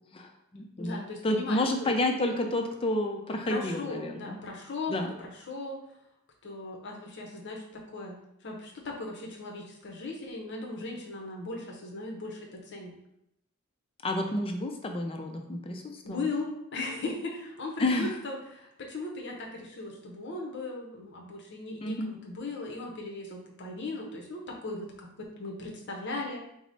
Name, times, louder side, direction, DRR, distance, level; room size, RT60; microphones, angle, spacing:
voice 1, 0.1-4.4 4.9-5.1 14.0-16.3 17.8-18.1 21.8-22.1, left 1 dB, 25° left, 4 dB, 0.4 m, -30 dB
voice 2, 0.8-1.9 3.5-5.8 6.4-8.2 8.4-12.9 16.0-25.1 25.4-26.4, left 2 dB, 55° left, 0 dB, 0.7 m, -38 dB
4.7 x 2.0 x 4.0 m, 0.81 s
head